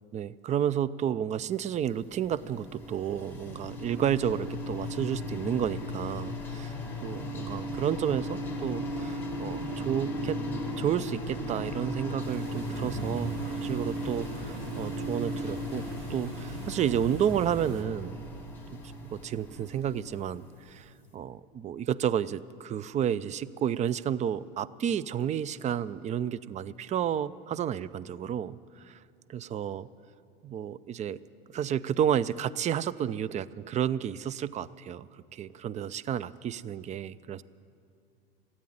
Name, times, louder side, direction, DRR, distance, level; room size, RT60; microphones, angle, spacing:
voice 1, 0.1-6.7 7.0-10.4 10.8-18.2 18.7-18.8 19.1-29.0 29.3-29.9 30.4-31.2 31.5-37.4, right 9 dB, 25° right, 18 dB, 0.4 m, -31 dB
sound 1, 1.7-20.8, equal, 5° left, 2.9 m, -36 dB
sound 2, 12.2-17.8, right 3 dB, 70° right, 2.0 m, -42 dB
14.0 x 8.7 x 10.0 m, 2.4 s
hypercardioid pair, 95°, 31 cm